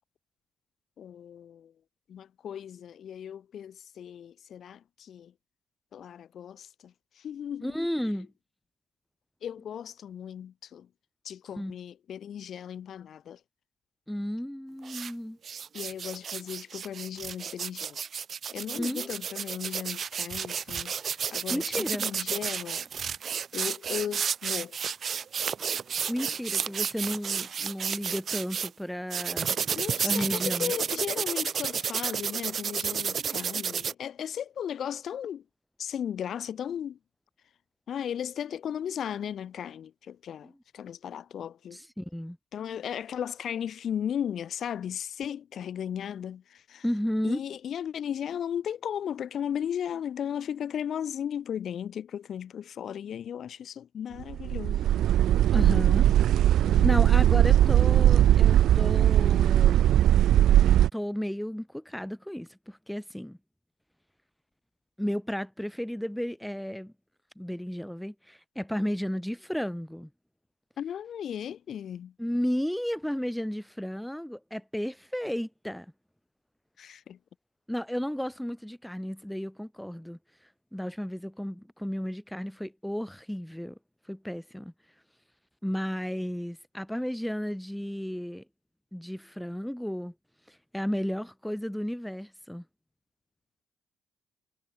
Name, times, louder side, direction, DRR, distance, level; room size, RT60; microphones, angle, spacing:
voice 1, 1.0-1.7 2.1-5.3 5.9-7.8 9.4-10.9 11.2-13.4 15.7-18.0 18.5-22.9 23.5-24.8 29.7-35.4 35.8-37.0 37.9-41.8 42.5-46.8 47.2-54.8 56.6-56.9 70.8-72.1 76.8-77.2, left 9 dB, 60° left, 7.0 m, -36 dB
voice 2, 7.6-8.3 11.6-11.8 14.1-15.4 18.8-19.2 21.5-22.0 26.1-30.7 40.4-40.5 41.7-42.4 46.8-47.4 55.5-56.1 56.5-59.9 60.9-63.4 65.0-66.9 67.4-70.1 72.2-75.9 77.7-80.2 80.7-83.8 84.1-84.7 85.6-88.4 88.9-90.1 90.5-92.6, equal, 5° left, 7.0 m, -33 dB
sound 1, 14.8-15.1 15.4-28.7 29.1-33.9, right 7 dB, 50° right, 1.5 m, -31 dB
sound 2, 54.3-60.9, right 12 dB, 75° right, 0.7 m, -20 dB
cardioid pair, 90°, 0 cm